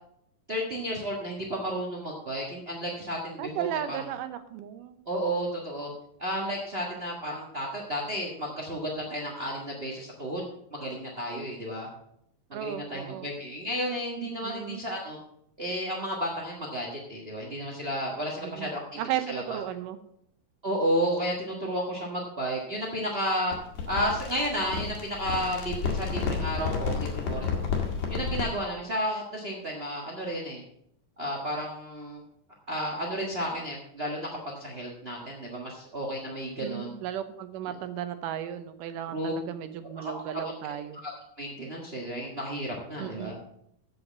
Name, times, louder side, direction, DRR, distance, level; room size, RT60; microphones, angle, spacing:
voice 1, 0.5-4.0 5.1-5.9 6.2-10.4 10.7-11.9 12.5-15.2 15.6-19.0 19.3-19.6 20.6-23.5 23.9-27.5 28.1-30.6 31.2-32.2 32.7-36.9 37.7-37.8 39.1-39.3 40.0-40.4 41.0-41.1 41.4-43.3, equal, 50° right, -1 dB, 0.7 m, -32 dB
voice 2, 3.4-5.0 12.5-13.3 14.4-14.8 18.4-20.0 36.6-41.0 43.0-43.4, right 10 dB, 85° right, 10 dB, 2.4 m, -35 dB
sound 1, 23.5-28.6, left 5 dB, 60° left, 2.9 m, -31 dB
8.0 x 7.6 x 7.3 m, 0.73 s
omnidirectional pair, 3.7 m